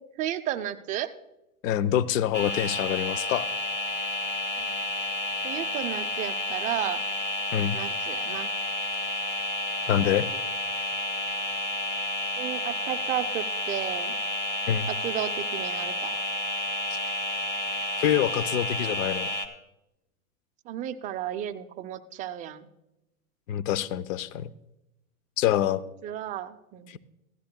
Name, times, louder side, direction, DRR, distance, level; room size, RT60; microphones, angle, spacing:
voice 1, 0.2-1.1 4.6-4.8 5.4-7.0 7.7-8.5 12.4-14.1 14.9-16.2 20.7-22.7 26.0-27.0, right 11 dB, 20° right, 9 dB, 0.4 m, -33 dB
voice 2, 1.6-3.5 7.5-7.8 9.9-10.3 14.7-14.9 16.9-17.0 18.0-19.3 23.5-24.5 25.4-25.8 26.9-27.0, left 11 dB, 65° left, 17 dB, 0.7 m, -26 dB
sound 1, 2.3-19.5, left 1 dB, 25° left, 1.3 m, -31 dB
16.0 x 13.0 x 2.2 m, 0.91 s
hypercardioid pair, 115°, 43 cm